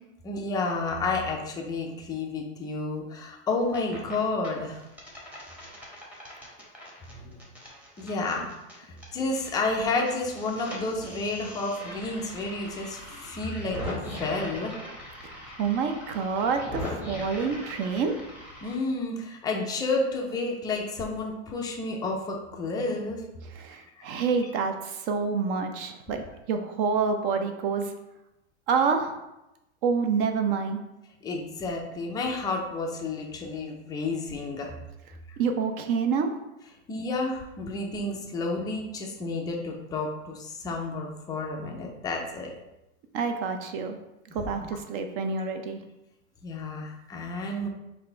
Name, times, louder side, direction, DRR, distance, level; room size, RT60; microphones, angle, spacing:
voice 1, 0.2-4.8 7.1-7.4 8.0-14.7 15.5-15.6 18.6-23.2 24.0-24.1 31.2-34.7 35.3-35.4 36.9-42.5 44.6-44.7 46.4-47.7, left 3 dB, 10° left, 0 dB, 0.3 m, -31 dB
sound 1, 3.5-4.1 4.4-9.5 9.8-18.7, left 1 dB, 5° right, 0.8 m, -40 dB
voice 2, 15.6-18.1 23.6-27.9 28.7-29.1 29.8-30.8 35.4-36.3 43.1-44.0 44.3-45.8, right 5 dB, 45° right, 6 dB, 0.5 m, -27 dB
3.9 x 2.5 x 4.4 m, 0.93 s
supercardioid pair, 130°, 36 cm